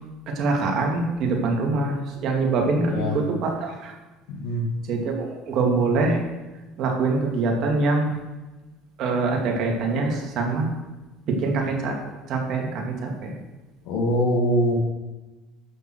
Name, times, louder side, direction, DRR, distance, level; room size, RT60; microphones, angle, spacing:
voice 1, 0.4-2.0 2.2-3.9 4.9-6.2 6.8-8.1 9.0-10.7 11.4-11.9 12.3-13.3, right 3 dB, 60° right, 1 dB, 2.6 m, -24 dB
voice 2, 4.3-4.6 13.9-14.8, equal, 70° left, -4 dB, 2.3 m, -23 dB
11.5 x 8.4 x 4.6 m, 1.1 s
supercardioid pair, 100°, 0 cm